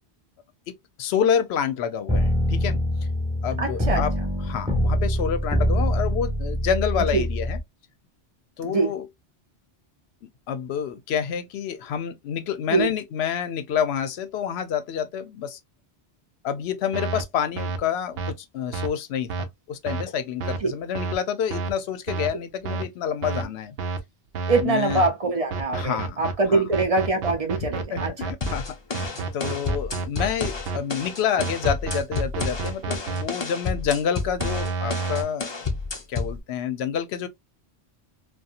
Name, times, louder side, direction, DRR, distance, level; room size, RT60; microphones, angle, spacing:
voice 1, 0.7-2.8 3.4-4.1 4.4-7.6 8.6-9.1 10.5-15.6 16.4-23.7 24.6-25.0 25.7-26.2 26.5-26.6 27.9-28.6 28.9-35.7 36.1-37.3, left 8 dB, 75° left, 0.8 m, -28 dB
sound 1, 2.1-7.6, equal, 5° right, 1.0 m, -24 dB
voice 2, 3.6-4.0 7.1-7.2 8.6-8.9 12.7-12.9 20.6-20.7 24.5-28.1, right 3 dB, 40° right, 0.6 m, -23 dB
sound 2, 16.9-17.2 17.6-17.8 18.2-18.3 18.7-18.9 19.3-19.4 19.9-20.0 20.4-20.6 20.9-21.2 21.5-21.7 22.1-22.3 22.6-22.8 23.2-23.4 23.8-24.0 24.3-24.6 24.9-25.1 25.5-26.3 26.7-28.5 28.9-30.8 31.4-33.2 34.4-35.2, right 4 dB, 70° right, 0.8 m, -29 dB
sound 3, 28.4-36.4, left 4 dB, 35° left, 0.4 m, -31 dB
2.7 x 2.3 x 2.4 m
omnidirectional pair, 1.1 m